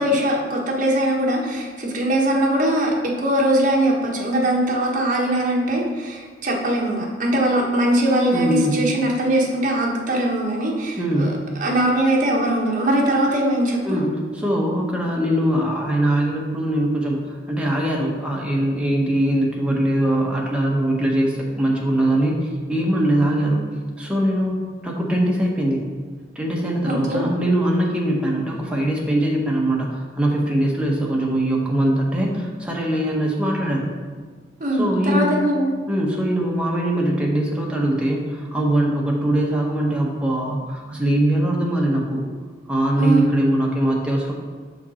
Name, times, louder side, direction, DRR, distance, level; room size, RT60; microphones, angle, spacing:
voice 1, 0.0-11.3 11.6-14.0 26.8-27.2 34.6-35.7 42.9-43.3, right 1 dB, 45° right, -2 dB, 1.2 m, -21 dB
voice 2, 8.3-8.8 11.0-11.3 13.8-23.6 24.0-25.8 26.3-33.9 34.8-35.4 35.9-42.2 42.7-44.3, right 1 dB, 5° right, -2 dB, 1.0 m, -21 dB
6.0 x 5.2 x 4.2 m, 1.5 s
head